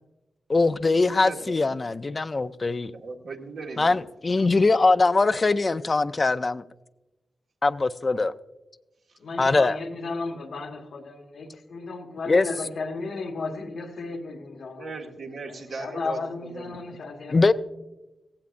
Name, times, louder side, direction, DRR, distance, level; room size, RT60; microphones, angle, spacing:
voice 1, 0.5-2.9 3.8-6.6 7.6-8.3 9.4-9.7 12.3-12.5 17.3-17.5, left 3 dB, 40° left, 0.5 m, -22 dB
voice 2, 1.2-1.8 3.0-4.0 4.4-4.5 14.8-16.2 16.5-16.8, right 4 dB, 80° right, 1.9 m, -37 dB
voice 3, 9.2-15.0 15.4-17.5, left 3 dB, 85° left, 1.7 m, -34 dB
16.5 x 15.5 x 2.6 m
cardioid pair, 65°, 0 cm